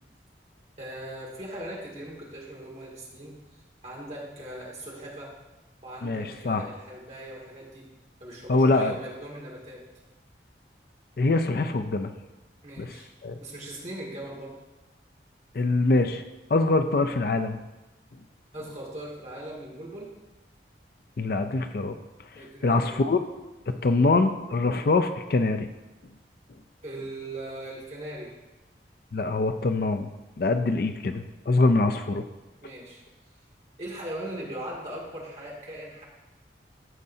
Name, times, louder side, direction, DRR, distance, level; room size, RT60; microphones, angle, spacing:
voice 1, 0.8-3.4 3.8-5.3 5.8-7.9 8.2-9.8 12.6-13.1 13.4-14.6 18.5-20.1 22.3-23.0 26.8-28.3 32.6-33.0 33.8-36.0, right 1 dB, 40° right, -3 dB, 2.1 m, -39 dB
voice 2, 6.0-6.6 8.5-8.9 11.2-12.1 12.8-12.9 13.2-13.4 15.5-16.2 16.5-17.6 21.2-22.0 22.6-23.2 23.7-25.7 29.1-30.1 30.4-32.2, left 3 dB, 55° left, 8 dB, 0.4 m, -24 dB
14.0 x 5.2 x 2.7 m, 1.1 s
head